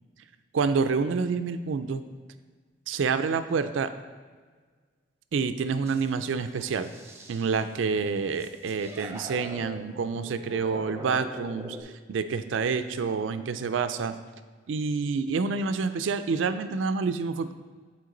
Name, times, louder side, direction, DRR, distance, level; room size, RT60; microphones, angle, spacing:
voice 1, 0.5-2.0 2.9-3.9 5.3-6.9 7.3-11.8 12.1-14.2 14.7-17.5, right 5 dB, 80° right, 10 dB, 0.4 m, -28 dB
sound 1, 5.9-7.6 8.3-11.8, equal, 15° right, 0.7 m, -43 dB
9.3 x 4.4 x 3.9 m, 1.5 s
head